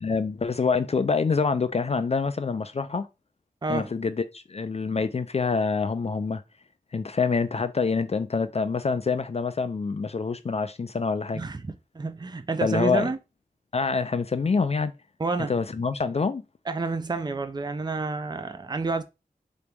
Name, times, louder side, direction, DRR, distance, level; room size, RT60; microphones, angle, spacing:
voice 1, 0.0-3.1 3.7-6.4 6.9-11.4 12.6-13.1 13.7-14.9 15.5-16.4, left 4 dB, 45° left, 0.4 m, -26 dB
voice 2, 3.6-3.9 11.3-13.2 15.2-15.5 16.7-19.0, right 3 dB, 30° right, 0.5 m, -29 dB
3.9 x 3.0 x 3.4 m
wide cardioid pair, 70°, 15 cm